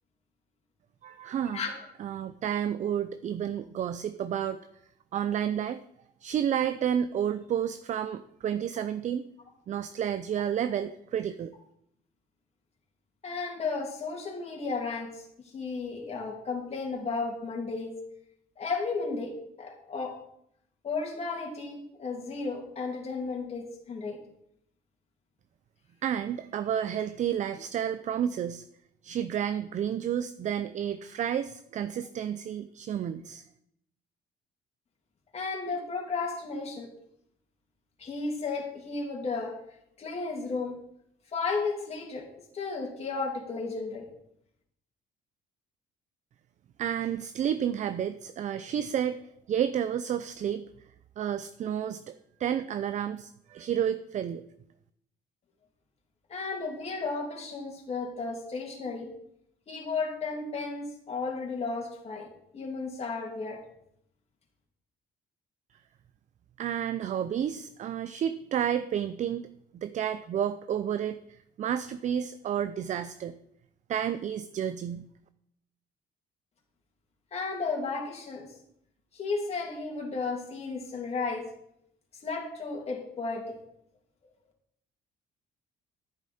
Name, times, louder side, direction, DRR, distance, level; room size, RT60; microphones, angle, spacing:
voice 1, 1.0-1.7 2.0-4.6 5.1-5.8 6.2-9.3 9.7-11.5 26.0-28.6 29.0-33.4 46.8-49.2 49.5-50.7 51.2-52.1 52.4-54.4 66.6-69.5 69.7-73.3 73.9-75.1, right 9 dB, 45° right, 12 dB, 0.5 m, -31 dB
voice 2, 13.2-15.2 15.5-18.0 18.6-20.2 20.8-24.2 35.3-36.9 38.0-39.5 40.0-40.7 41.3-42.3 42.5-44.1 56.3-59.1 59.7-62.3 62.5-63.6 77.3-78.5 79.1-81.5 82.2-83.4, left 4 dB, 40° left, -1 dB, 2.7 m, -33 dB
11.0 x 10.0 x 4.3 m, 0.74 s
cardioid pair, 110°, 17 cm